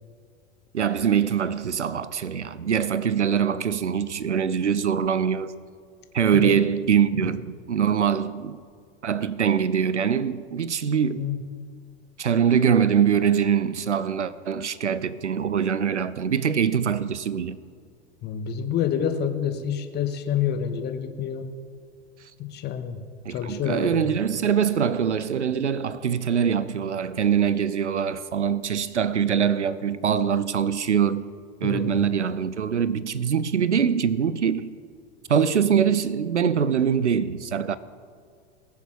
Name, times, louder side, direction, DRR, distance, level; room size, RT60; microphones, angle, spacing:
voice 1, 0.7-5.5 6.1-8.6 9.0-11.3 12.2-17.6 23.3-31.3 31.6-34.8 35.3-37.8, right 7 dB, 85° right, 0.5 m, -23 dB
voice 2, 18.2-21.5 22.4-23.0 23.3-24.2 31.6-32.0, left 8 dB, 30° left, 1.0 m, -28 dB
20.5 x 7.1 x 4.5 m
figure-of-eight pair, 85°, 34 cm